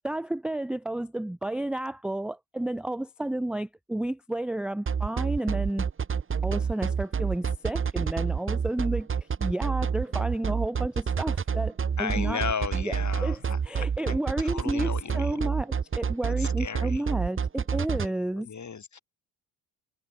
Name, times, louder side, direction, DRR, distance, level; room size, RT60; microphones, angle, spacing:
voice 1, 0.0-5.9 6.4-9.1 9.4-12.4 12.7-12.9 13.2-18.5, right 1 dB, ahead, 0.4 m, -31 dB
sound 1, 4.9-18.1, right 6 dB, 25° right, 1.0 m, -28 dB
voice 2, 12.0-15.4 16.3-17.0 18.3-19.0, left 6 dB, 35° left, 3.0 m, -35 dB
hypercardioid pair, 55°, 46 cm